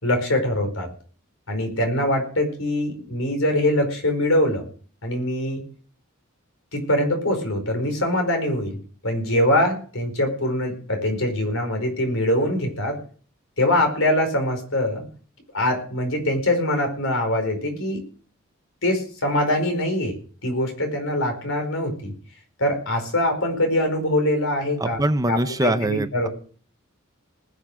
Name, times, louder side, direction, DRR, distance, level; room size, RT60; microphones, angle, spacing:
voice 1, 0.0-0.9 1.5-4.6 5.0-5.6 6.7-8.8 9.0-13.0 13.6-15.0 15.5-18.0 18.8-20.2 20.4-22.1 22.6-26.3, left 1 dB, 75° left, 4 dB, 4.9 m, -23 dB
voice 2, 24.8-26.3, right 1 dB, 15° right, 10 dB, 0.7 m, -23 dB
20.0 x 7.1 x 6.3 m, 0.43 s
head